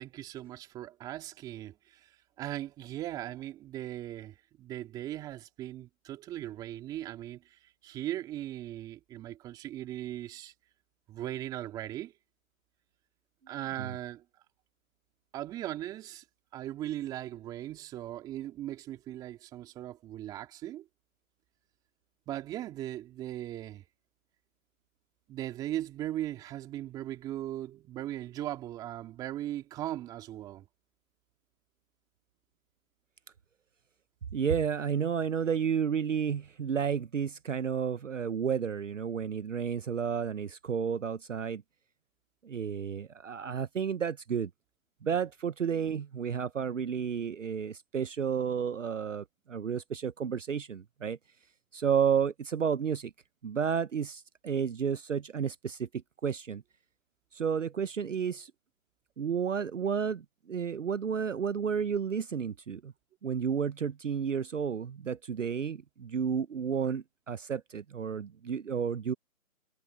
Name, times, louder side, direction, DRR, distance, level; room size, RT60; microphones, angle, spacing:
voice 1, 0.0-1.7 2.4-10.5 11.1-12.1 13.5-14.2 15.3-16.2 16.5-20.8 22.3-23.8 25.3-30.6, right 13 dB, 10° right, 2.9 m, -38 dB
voice 2, 34.3-41.6 42.4-44.5 45.0-51.2 51.7-53.1 53.4-55.9 56.2-56.6 57.3-58.5 59.2-62.9 63.2-69.1, right 7 dB, 60° right, 0.9 m, -31 dB
hypercardioid pair, 165°, 43 cm